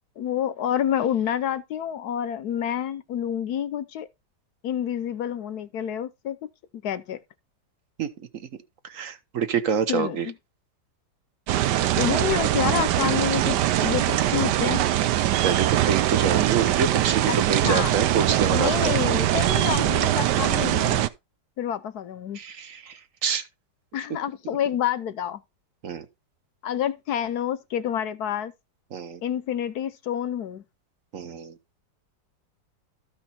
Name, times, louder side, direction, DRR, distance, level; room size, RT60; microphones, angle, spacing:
voice 1, 0.2-4.1 4.6-6.4 6.8-7.2 9.9-10.3 11.9-14.8 17.3-17.9 18.5-21.1 21.6-22.4 23.9-25.4 26.6-28.5 29.2-30.6, left 10 dB, 70° left, 1.2 m, -28 dB
voice 2, 8.0-8.5 8.8-10.3 15.4-19.0 22.3-23.4 25.8-26.1 28.9-29.2 31.1-31.5, right 6 dB, 55° right, 1.3 m, -27 dB
sound 1, 11.5-21.1, right 13 dB, 80° right, 1.3 m, -22 dB
13.5 x 5.3 x 4.3 m
omnidirectional pair, 1.8 m